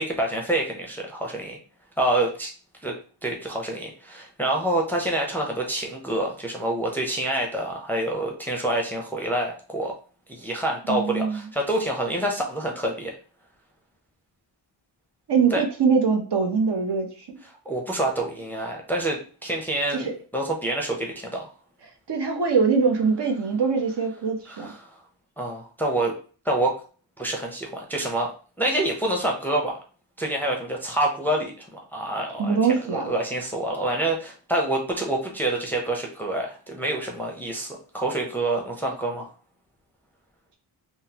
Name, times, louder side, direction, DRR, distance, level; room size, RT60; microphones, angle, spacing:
voice 1, 0.0-1.6 2.0-2.5 2.8-9.9 10.3-13.1 15.5-15.6 17.7-21.5 24.5-24.9 25.4-26.1 26.5-26.8 27.2-28.3 28.6-29.8 30.2-32.6 32.9-39.3, right 1 dB, 5° left, 0 dB, 0.6 m, -27 dB
voice 2, 10.9-11.5 15.3-17.1 19.9-20.1 22.1-24.7 32.4-33.1, right 5 dB, 60° right, 2 dB, 0.8 m, -23 dB
3.7 x 2.1 x 2.8 m, 0.39 s
wide cardioid pair, 95°, 48 cm